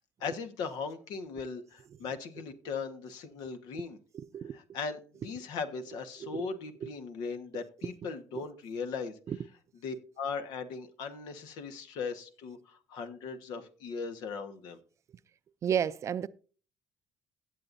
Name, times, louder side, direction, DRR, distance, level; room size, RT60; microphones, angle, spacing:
voice 1, 0.2-4.0 4.5-9.2 9.8-14.8, left 5 dB, 75° left, 1.4 m, -38 dB
voice 2, 4.1-4.6 6.2-6.5 6.8-6.9 8.0-8.4 9.3-9.4 15.6-16.3, right 8 dB, 45° right, 0.5 m, -33 dB
16.5 x 7.7 x 2.6 m
supercardioid pair, 85°, 7 cm